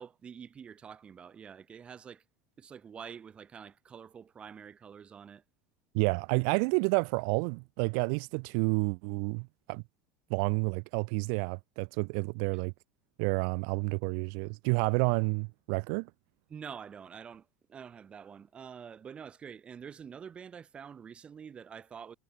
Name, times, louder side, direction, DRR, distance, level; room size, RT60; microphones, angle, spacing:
voice 1, 0.0-2.2 2.6-5.4 12.5-12.6 16.5-22.2, right 7 dB, 20° right, 1.2 m, -47 dB
voice 2, 5.9-9.8 10.3-12.7 13.2-16.1, right 40 dB or more, 60° right, 0.4 m, -30 dB
supercardioid pair, 160°, 5 cm